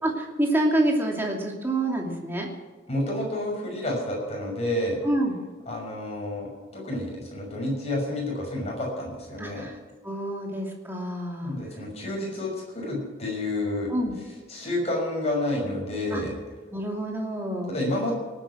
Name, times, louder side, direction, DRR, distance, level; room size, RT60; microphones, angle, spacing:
voice 1, 0.0-2.5 5.0-5.4 9.4-9.7 10.0-11.5 13.9-14.1 16.1-16.2 16.7-17.7, right 1 dB, 10° right, 0 dB, 2.6 m, -27 dB
voice 2, 2.9-5.0 5.7-9.7 11.4-13.9 14.5-16.3 17.7-18.1, left 1 dB, 35° left, -1 dB, 6.1 m, -29 dB
18.5 x 9.3 x 6.2 m, 1.5 s
head